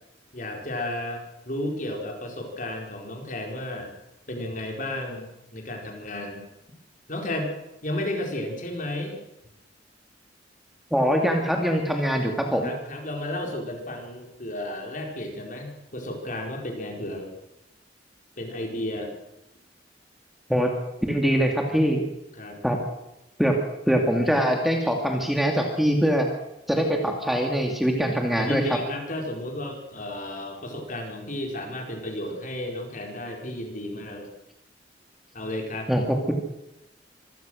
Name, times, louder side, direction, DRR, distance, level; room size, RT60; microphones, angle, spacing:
voice 1, 0.3-3.9 4.3-6.4 7.1-7.5 7.8-9.2 12.6-17.3 18.4-19.1 22.3-22.6 28.3-34.3 35.3-35.9, left 1 dB, 45° left, 2 dB, 4.7 m, -33 dB
voice 2, 10.9-12.7 20.5-20.7 21.1-22.0 22.6-22.8 23.4-23.6 23.9-26.3 26.7-28.8 35.9-36.3, equal, ahead, 2 dB, 2.4 m, -23 dB
25.5 x 17.0 x 6.5 m, 0.90 s
head